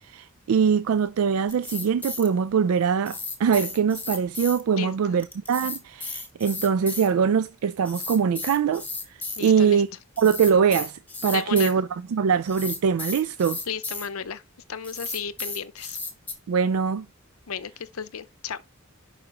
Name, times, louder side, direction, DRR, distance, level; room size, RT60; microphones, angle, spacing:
voice 1, 0.0-9.9 10.2-13.6 16.5-17.1, right 6 dB, 90° right, 0.4 m, -23 dB
sound 1, 1.5-2.3 3.1-4.6 5.2-7.1 7.9-9.5 10.2-11.7 12.4-14.1 14.8-16.3, left 3 dB, 10° left, 1.5 m, -34 dB
voice 2, 4.8-5.2 9.4-9.8 11.3-11.8 13.7-14.4 14.7-16.0 17.5-18.6, left 7 dB, 85° left, 0.7 m, -34 dB
10.5 x 4.8 x 2.9 m
head